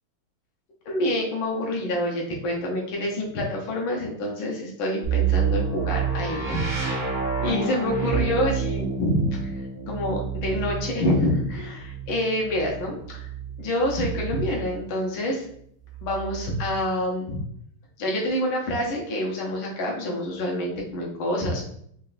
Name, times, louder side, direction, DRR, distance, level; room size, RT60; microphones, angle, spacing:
voice 1, 0.9-7.0 7.4-9.4 9.9-13.3 13.6-15.5 16.0-17.4 18.0-21.6, left 1 dB, 70° left, -2 dB, 1.5 m, -27 dB
sound 1, 5.0-14.8 15.9-16.9, right 6 dB, 30° right, 1.6 m, -29 dB
3.9 x 3.4 x 2.4 m, 0.68 s
omnidirectional pair, 2.4 m